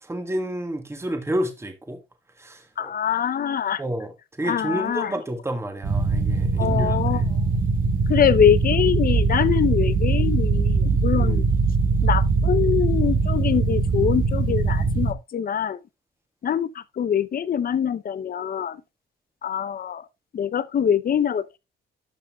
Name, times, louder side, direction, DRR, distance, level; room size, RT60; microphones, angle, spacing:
voice 1, 0.0-2.0 2.4-2.9 3.8-7.3 11.2-11.5, right 1 dB, 15° right, 1.7 m, -30 dB
voice 2, 2.8-3.8 4.4-5.1 6.6-7.2 8.1-11.4 12.0-15.8 16.4-18.8 19.4-20.1 20.3-21.6, left 8 dB, 45° left, 0.7 m, -23 dB
sound 1, 5.8-15.1, right 4 dB, 45° right, 1.3 m, -21 dB
12.5 x 6.6 x 2.3 m
cardioid pair, 90°, 20 cm